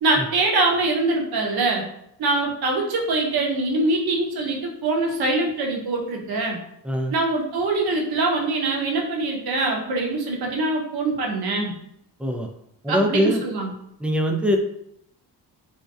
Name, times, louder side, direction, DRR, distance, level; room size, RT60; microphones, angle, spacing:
voice 1, 0.0-1.8 2.2-6.6 7.1-11.7 12.9-13.7, right 2 dB, 65° right, 0 dB, 0.8 m, -23 dB
voice 2, 12.8-13.4 14.0-14.6, equal, 5° right, 2 dB, 0.3 m, -22 dB
2.6 x 2.2 x 2.3 m, 0.74 s
cardioid pair, 65°, 41 cm